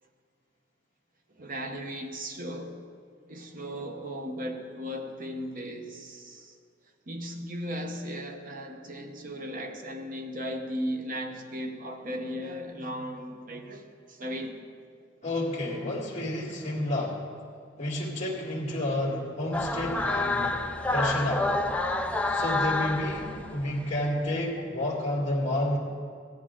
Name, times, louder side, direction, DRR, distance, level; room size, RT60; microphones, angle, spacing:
voice 1, 1.3-2.8 3.3-6.6 7.1-14.7, equal, 45° right, 4 dB, 1.0 m, -36 dB
voice 2, 15.2-17.3 17.8-20.6 20.9-21.5 22.3-25.8, left 1 dB, 35° left, -6 dB, 2.0 m, -30 dB
sound 1, 19.5-23.9, left 2 dB, 5° left, 0.4 m, -28 dB
16.0 x 9.8 x 3.7 m, 2.2 s
head